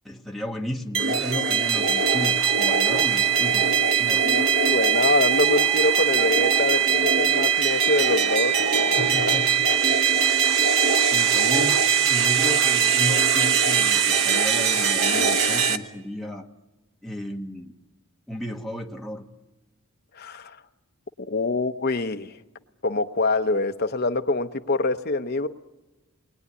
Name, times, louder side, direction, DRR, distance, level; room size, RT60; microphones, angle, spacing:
voice 1, 0.0-4.3 9.0-9.7 10.9-16.5 17.0-17.7 18.3-19.2, equal, ahead, 1.3 m, -33 dB
sound 1, 0.9-15.8, right 7 dB, 60° right, 1.1 m, -21 dB
voice 2, 4.2-9.4 20.2-20.6 21.2-22.4 22.8-25.5, left 3 dB, 45° left, 0.8 m, -25 dB
28.5 x 21.0 x 9.7 m
head